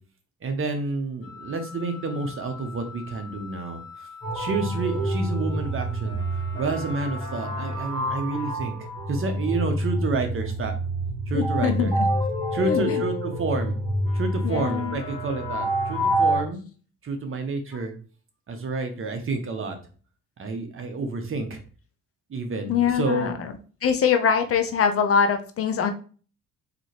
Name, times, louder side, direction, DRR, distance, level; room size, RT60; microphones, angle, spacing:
voice 1, 0.4-3.8 4.3-6.2 6.6-8.7 9.1-10.7 11.3-11.9 12.5-13.7 14.1-16.6 17.0-17.9 18.5-19.8 20.4-21.6 22.3-23.3, right 3 dB, 45° right, 5 dB, 0.9 m, -29 dB
Wind instrument woodwind instrument, 1.2-8.1, left 5 dB, 90° left, 0.7 m, -45 dB
sound 1, 4.2-16.4, equal, 10° left, 1.8 m, -27 dB
voice 2, 11.3-12.1 12.6-13.0 14.4-15.0 22.7-23.5 23.8-25.9, left 7 dB, 50° left, 7 dB, 0.6 m, -23 dB
3.9 x 2.9 x 3.2 m, 0.39 s
cardioid pair, 90°, 30 cm